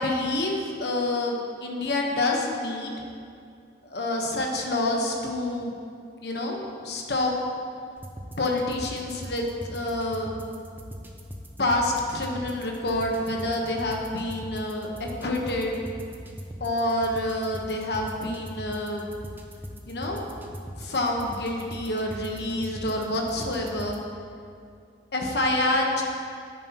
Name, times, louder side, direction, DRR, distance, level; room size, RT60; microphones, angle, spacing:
voice 1, 0.0-2.9 3.8-5.8 6.2-7.3 8.4-10.4 11.6-15.8 16.6-19.1 19.9-20.3 20.8-24.0 25.1-26.0, left 1 dB, 65° left, 1 dB, 1.1 m, -27 dB
sound 1, 8.0-24.0, equal, 10° right, 0.6 m, -41 dB
9.9 x 9.5 x 3.0 m, 2.3 s
head